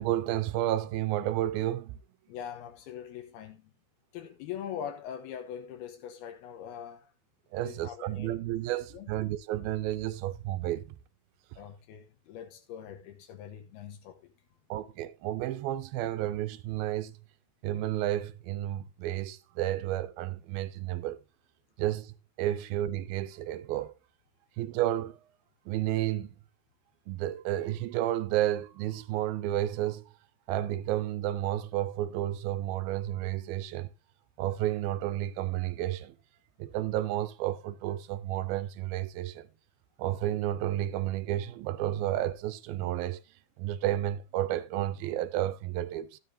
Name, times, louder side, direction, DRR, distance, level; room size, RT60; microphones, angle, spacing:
voice 1, 0.0-2.0 7.5-10.8 14.7-17.1 17.6-21.2 21.8-23.9 24.6-25.2 25.7-26.3 27.1-30.1 30.5-33.9 34.4-36.1 36.6-39.5 40.0-43.2 43.6-46.2, right 13 dB, 80° right, 2.4 m, -31 dB
voice 2, 2.3-3.7 4.1-7.1 7.6-8.4 8.7-9.2 11.6-14.2, left 9 dB, 80° left, 3.0 m, -42 dB
13.0 x 10.0 x 2.7 m
omnidirectional pair, 4.4 m